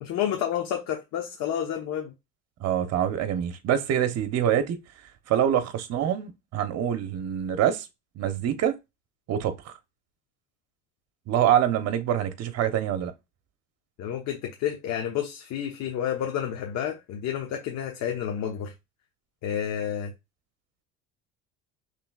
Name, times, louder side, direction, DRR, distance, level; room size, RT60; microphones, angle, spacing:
voice 1, 0.0-2.1 14.0-18.7 19.4-20.1, left 9 dB, 60° left, 1.0 m, -30 dB
voice 2, 2.6-4.8 5.3-7.9 8.2-8.8 9.3-9.7 11.3-13.1, right 10 dB, 55° right, 1.0 m, -25 dB
5.9 x 3.3 x 2.4 m
supercardioid pair, 95°, 31 cm